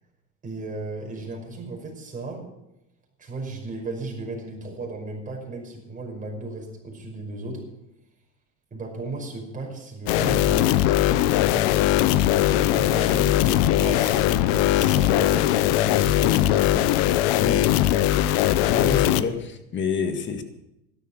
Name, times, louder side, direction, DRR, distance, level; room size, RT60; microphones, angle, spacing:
voice 1, 0.4-2.5 3.2-7.6 8.7-10.8 11.5-11.9 12.7-16.9, right 2 dB, 25° right, 0 dB, 5.6 m, -35 dB
sound 1, 10.1-19.2, left 13 dB, 70° left, 0.9 m, -20 dB
voice 2, 17.4-17.7 18.7-20.4, left 5 dB, 35° left, 8 dB, 1.9 m, -27 dB
13.0 x 12.0 x 6.4 m, 0.87 s
supercardioid pair, 105°, 33 cm